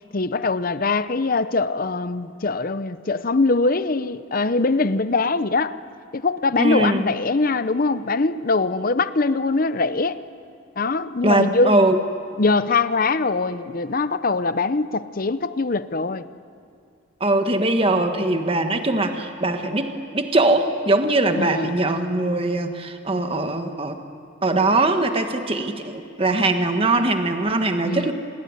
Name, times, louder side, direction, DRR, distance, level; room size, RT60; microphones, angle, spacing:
voice 1, 0.1-5.8 6.1-10.2 10.8-11.8 12.4-16.2 21.4-21.7 27.8-28.1, left 3 dB, 45° left, 14 dB, 0.7 m, -22 dB
voice 2, 6.6-7.0 11.2-12.0 17.2-24.0 24.4-28.1, right 2 dB, 25° right, 6 dB, 1.4 m, -21 dB
27.5 x 20.5 x 9.6 m, 2.5 s
head